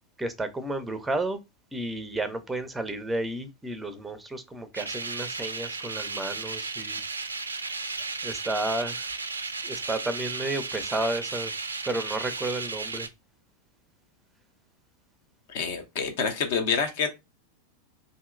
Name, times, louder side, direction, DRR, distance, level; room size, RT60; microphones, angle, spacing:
voice 1, 0.2-1.4 1.7-7.0 8.2-9.1 9.6-11.5 11.8-13.1, right 2 dB, 10° right, 0.5 m, -32 dB
sound 1, 4.7-13.1, right 4 dB, 75° right, 0.3 m, -34 dB
voice 2, 15.5-17.1, left 5 dB, 50° left, 0.6 m, -27 dB
2.8 x 2.6 x 2.4 m
figure-of-eight pair, 90°, 0 cm